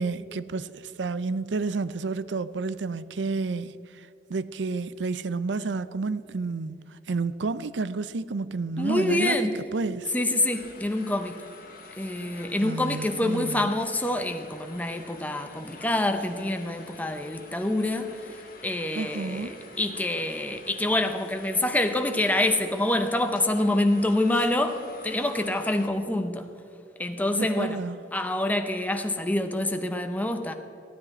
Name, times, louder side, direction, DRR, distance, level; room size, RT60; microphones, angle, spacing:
voice 1, 0.0-3.8 4.3-9.4 9.7-10.1 12.6-13.7 19.0-19.5 27.3-28.0, right 3 dB, 85° right, 0.5 m, -30 dB
voice 2, 8.8-9.5 10.1-11.4 12.0-18.4 18.6-26.5 27.0-27.8 28.1-30.5, left 1 dB, 10° left, 0.7 m, -26 dB
sound 1, 10.5-25.9, left 3 dB, 55° left, 1.5 m, -48 dB
15.5 x 12.5 x 4.3 m
head